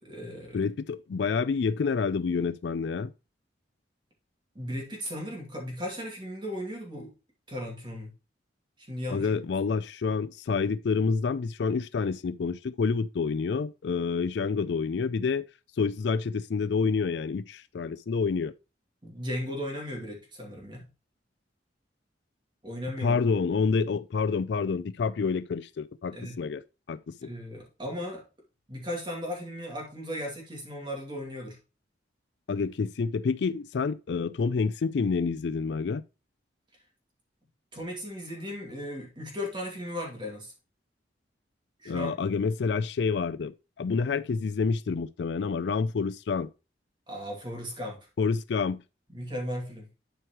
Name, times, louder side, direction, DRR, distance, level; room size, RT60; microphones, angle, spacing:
voice 1, 0.0-0.6 4.5-7.1 7.5-8.1 8.8-9.5 19.0-20.9 22.6-23.2 26.1-26.4 27.2-28.2 28.7-31.6 37.7-40.5 41.8-42.1 47.1-48.0 49.1-49.9, equal, 25° right, 2.4 m, -36 dB
voice 2, 0.5-3.1 9.1-15.5 15.8-18.5 23.0-26.6 26.9-27.3 32.5-36.0 41.9-46.5 48.2-48.8, left 5 dB, 65° left, 0.4 m, -28 dB
11.0 x 4.7 x 3.0 m
head